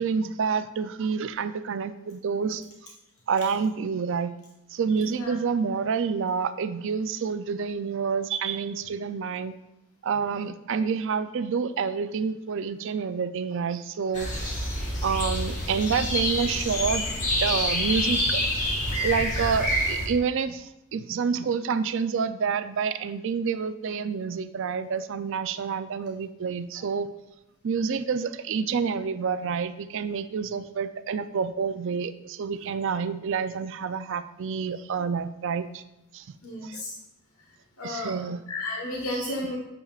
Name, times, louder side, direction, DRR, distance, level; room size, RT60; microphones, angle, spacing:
voice 1, 0.0-2.7 3.3-4.3 4.7-9.5 10.0-14.7 15.0-17.1 17.4-18.4 19.0-27.1 27.6-35.8 36.1-36.3 36.6-36.8 37.8-38.4 39.1-39.3, right 6 dB, 60° right, 12 dB, 0.4 m, -28 dB
voice 2, 5.0-5.3 18.9-19.0 36.4-36.9 37.8-38.1 38.5-39.6, left 2 dB, 80° left, -1 dB, 1.2 m, -33 dB
sound 1, 14.1-20.1, left 1 dB, 35° left, 1.3 m, -27 dB
8.8 x 6.9 x 2.4 m, 0.91 s
head